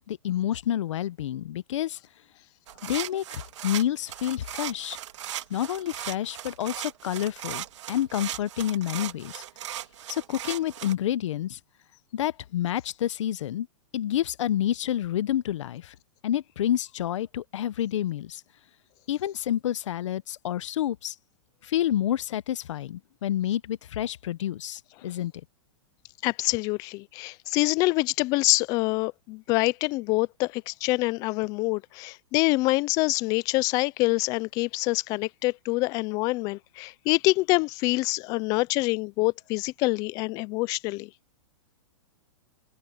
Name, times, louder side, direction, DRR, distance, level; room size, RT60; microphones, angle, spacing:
voice 1, 0.1-2.0 2.8-5.0 5.5-9.4 10.1-11.6 12.1-13.7 13.9-15.9 16.2-18.4 19.1-21.1 21.6-25.3, left 11 dB, 70° left, 0.9 m, -29 dB
sound 1, 2.7-10.9, right 12 dB, 65° right, 2.6 m, -37 dB
voice 2, 26.2-41.1, left 23 dB, 20° left, 0.4 m, -26 dB
open air
hypercardioid pair, 160°, 16 cm